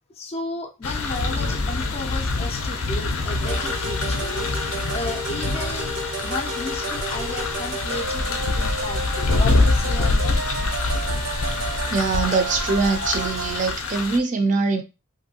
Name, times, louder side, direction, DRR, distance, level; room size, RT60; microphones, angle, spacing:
voice 1, 0.2-4.5 4.9-6.0 6.2-10.4, left 2 dB, 30° left, 0.4 m, -34 dB
sound 1, 0.8-14.2, left 3 dB, 90° left, 0.5 m, -25 dB
sound 2, 3.4-13.7, right 2 dB, 90° right, 0.9 m, -32 dB
voice 2, 11.9-14.8, right 4 dB, 35° right, 0.4 m, -23 dB
3.0 x 2.6 x 2.7 m
head